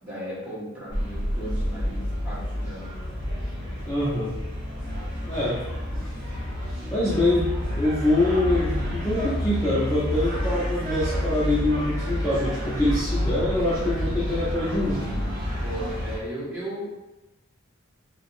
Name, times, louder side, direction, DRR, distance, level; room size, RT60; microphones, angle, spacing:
voice 1, 0.0-2.9 15.6-16.8, right 1 dB, 5° right, -10 dB, 1.3 m, -36 dB
sound 1, 0.9-16.2, left 1 dB, 50° right, 1.2 m, -29 dB
voice 2, 3.8-4.3 5.3-5.6 6.9-7.5 7.7-15.0, left 1 dB, 15° left, -11 dB, 0.6 m, -24 dB
4.4 x 2.0 x 2.5 m, 1.0 s
head